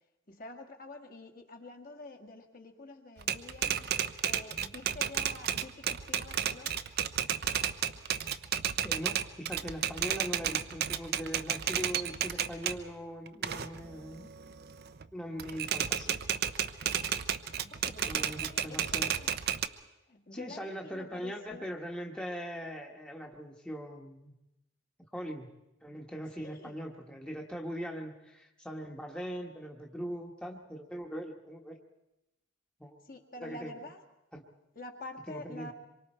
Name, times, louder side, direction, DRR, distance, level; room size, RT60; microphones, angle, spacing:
voice 1, 0.3-3.9 4.2-6.8 17.4-19.4 20.1-21.8 26.4-26.8 33.0-34.0 34.7-35.7, left 2 dB, 45° left, 3 dB, 1.8 m, -48 dB
Typewriter, 3.2-12.8 13.3-15.0 15.4-19.7, right 9 dB, 50° right, 0.7 m, -32 dB
voice 2, 8.8-14.3 15.1-16.2 18.0-19.1 20.3-24.3 25.1-25.5 25.8-31.8 32.8-33.0 33.4-33.7 34.3-34.4 35.3-35.7, equal, 5° left, 0 dB, 1.3 m, -41 dB
26.0 x 23.5 x 4.4 m, 0.92 s
head